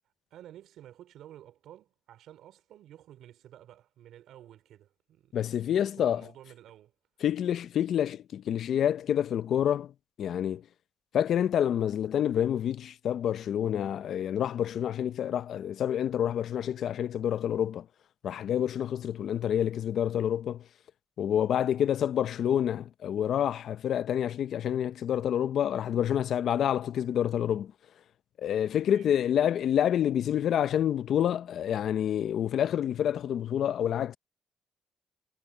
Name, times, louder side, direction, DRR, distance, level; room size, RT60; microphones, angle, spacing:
voice 1, 0.3-6.9 28.9-29.1, right 12 dB, 80° right, 4.5 m, -52 dB
voice 2, 5.3-6.3 7.2-9.9 10.2-10.6 11.1-17.9 18.2-20.7 21.2-27.7 28.4-34.2, left 10 dB, 65° left, 0.6 m, -28 dB
cardioid pair, 90°, 0 cm